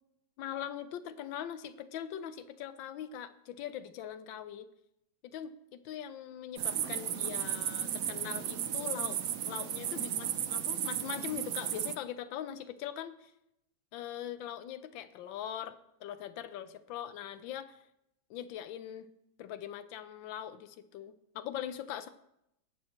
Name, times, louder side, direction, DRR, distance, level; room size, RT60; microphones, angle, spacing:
voice 1, 0.4-4.7 5.2-13.3 13.9-17.8 18.3-19.1 19.4-22.1, left 10 dB, 80° left, 12 dB, 1.4 m, -41 dB
sound 1, 6.6-11.9, right 10 dB, 80° right, 0.7 m, -34 dB
20.0 x 7.6 x 2.9 m, 0.82 s
omnidirectional pair, 2.1 m